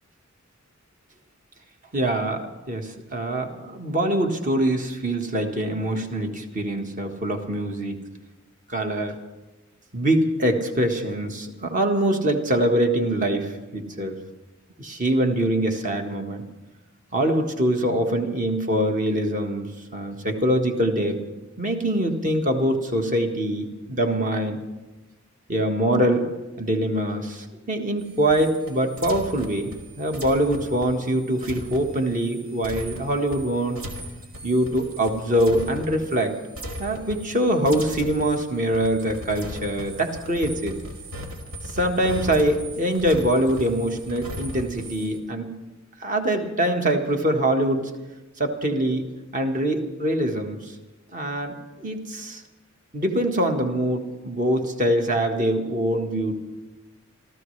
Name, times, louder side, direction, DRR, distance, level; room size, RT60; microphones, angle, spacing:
voice 1, 1.9-8.0 8.7-9.2 9.9-14.2 14.8-16.4 17.1-19.7 19.9-21.2 21.6-24.6 25.5-26.3 26.6-29.7 30.0-33.8 34.4-36.4 36.8-40.8 41.7-45.5 46.0-47.9 48.4-50.7 51.1-52.4 52.9-56.3, right 1 dB, 40° right, 4 dB, 1.5 m, -24 dB
sound 1, 28.0-36.3 36.5-37.4 37.6-45.2, equal, 85° right, 2.1 m, -38 dB
27.0 x 14.0 x 3.3 m, 1.1 s
head